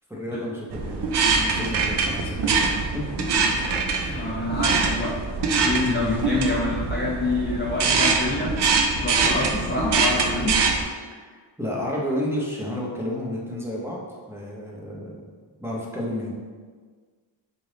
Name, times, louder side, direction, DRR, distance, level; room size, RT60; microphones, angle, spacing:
voice 1, 0.1-1.0 1.3-3.5 3.9-4.4 5.7-6.1 11.1-14.0 14.3-15.2 15.6-16.3, left 1 dB, 5° right, -5 dB, 0.7 m, -31 dB
sound 1, 0.7-10.8, right 4 dB, 60° right, 0.5 m, -24 dB
voice 2, 4.0-5.2 5.6-8.5 9.0-10.7, left 2 dB, 25° left, -6 dB, 0.5 m, -27 dB
3.7 x 2.5 x 3.3 m, 1.5 s
wide cardioid pair, 85°, 46 cm